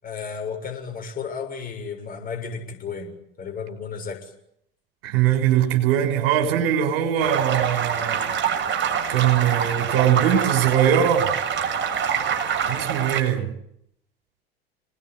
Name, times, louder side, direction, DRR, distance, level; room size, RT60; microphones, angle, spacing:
voice 1, 0.0-4.3, left 6 dB, 25° left, 7.1 m, -33 dB
voice 2, 5.0-8.2 9.1-11.3 12.7-13.5, right 10 dB, 60° right, 6.3 m, -21 dB
sound 1, 7.2-13.2, right 7 dB, 35° right, 6.6 m, -25 dB
28.5 x 20.0 x 9.4 m
figure-of-eight pair, 75°, 32 cm